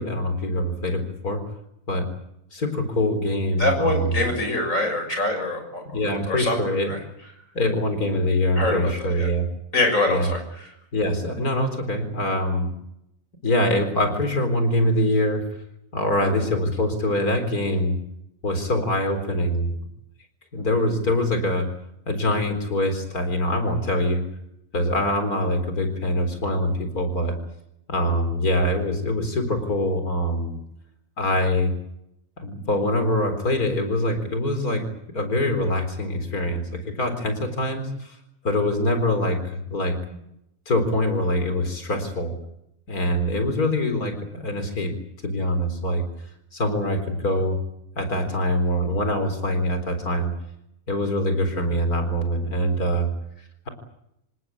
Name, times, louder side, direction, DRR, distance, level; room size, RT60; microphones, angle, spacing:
voice 1, 0.0-1.5 1.9-2.1 2.5-4.3 5.9-7.0 7.5-9.5 10.1-10.3 10.9-12.7 13.4-15.5 15.9-18.0 18.4-19.7 20.5-21.7 22.1-24.2 24.7-27.4 27.9-30.6 31.2-31.8 32.4-34.9 35.1-38.2 38.4-40.2 40.7-42.4 42.9-45.0 45.2-46.0 46.5-47.6 48.0-50.3 50.9-53.1, left 1 dB, 85° left, 8 dB, 4.5 m, -24 dB
voice 2, 3.6-5.8 6.3-6.6 6.9-7.0 8.6-9.3 9.7-10.4, left 2 dB, 60° left, 5 dB, 6.9 m, -24 dB
27.0 x 19.0 x 8.6 m, 0.81 s
omnidirectional pair, 1.5 m